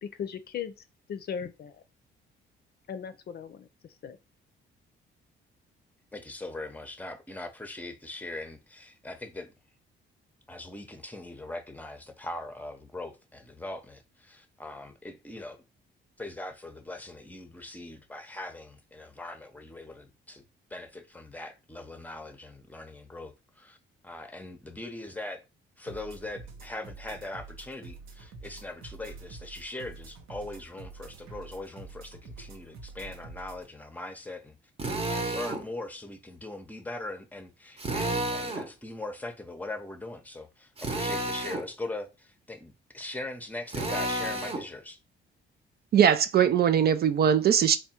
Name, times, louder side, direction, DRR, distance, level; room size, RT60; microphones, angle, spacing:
voice 1, 0.0-1.8 2.9-4.2, left 7 dB, 55° left, 0.5 m, -38 dB
voice 2, 6.1-9.5 10.5-15.6 16.2-20.4 20.7-23.8 24.0-25.4 25.8-34.6 35.1-45.0, left 2 dB, 10° left, 0.7 m, -41 dB
sound 1, 25.9-33.7, right 4 dB, 90° right, 0.8 m, -47 dB
Drill, 34.8-35.6 37.8-38.7 40.8-41.7 43.7-44.7, right 1 dB, 30° right, 0.9 m, -31 dB
voice 3, 45.9-47.8, right 8 dB, 50° right, 0.4 m, -21 dB
3.5 x 2.2 x 4.3 m
cardioid pair, 90°, 20 cm